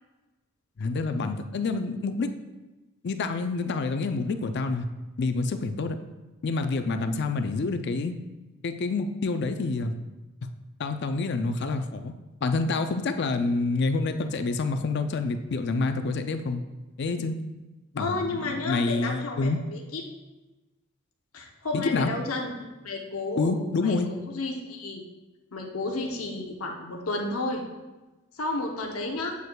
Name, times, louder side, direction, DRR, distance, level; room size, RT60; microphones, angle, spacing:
voice 1, 0.8-2.3 3.0-4.9 5.2-6.0 6.4-8.2 8.6-9.9 10.8-12.1 12.4-16.6 17.0-17.4 17.9-19.6 21.7-22.1 23.4-24.1, left 3 dB, 55° left, 8 dB, 0.4 m, -27 dB
voice 2, 18.0-20.0 21.3-22.5 22.8-25.0 25.5-27.6 28.3-29.4, left 2 dB, 85° left, 1 dB, 0.8 m, -32 dB
8.2 x 6.5 x 2.3 m, 1.1 s
head